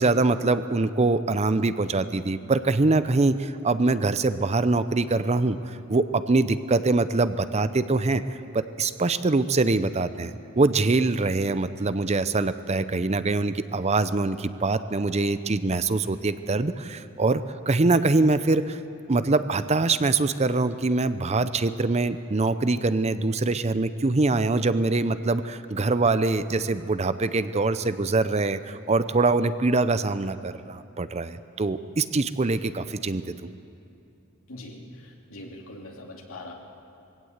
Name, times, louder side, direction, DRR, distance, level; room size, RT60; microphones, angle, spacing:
voice 1, 0.0-8.2 8.5-18.8 19.1-33.4, right 3 dB, 30° right, 13 dB, 0.6 m, -24 dB
voice 2, 34.5-36.5, left 1 dB, 85° left, 0 dB, 2.8 m, -42 dB
21.5 x 16.5 x 8.1 m, 2.7 s
head